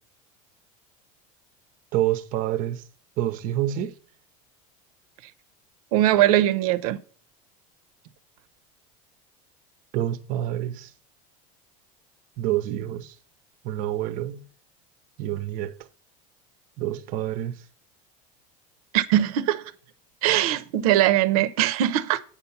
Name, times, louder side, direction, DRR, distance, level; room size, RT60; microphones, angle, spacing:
voice 1, 1.9-2.8 3.2-3.9 9.9-10.9 12.4-13.1 13.6-14.5 15.2-15.7 16.8-17.6, right 13 dB, 50° right, 0.9 m, -27 dB
voice 2, 5.9-7.0 18.9-19.6 20.2-22.2, right 13 dB, 85° right, 0.9 m, -21 dB
8.7 x 5.8 x 7.0 m
supercardioid pair, 150°, 18 cm